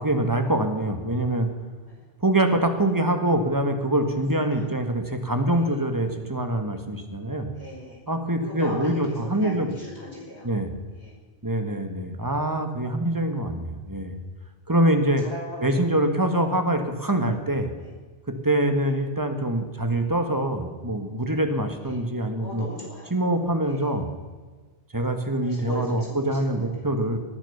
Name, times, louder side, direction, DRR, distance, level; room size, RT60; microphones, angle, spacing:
voice 1, 0.0-1.5 2.2-7.5 8.1-9.7 10.4-10.7 11.4-14.2 14.7-15.2 15.6-17.7 18.3-22.7 23.1-24.0 24.9-27.2, right 1 dB, 15° right, 6 dB, 1.6 m, -24 dB
voice 2, 4.3-4.6 5.5-5.8 7.5-8.0 8.4-10.5 10.9-11.2 15.0-15.8 16.3-16.4 17.8-17.9 21.8-22.0 22.4-23.1 23.6-23.9 25.4-26.4, left 1 dB, 65° left, -3 dB, 5.7 m, -39 dB
19.0 x 10.5 x 7.0 m, 1.4 s
omnidirectional pair, 1.2 m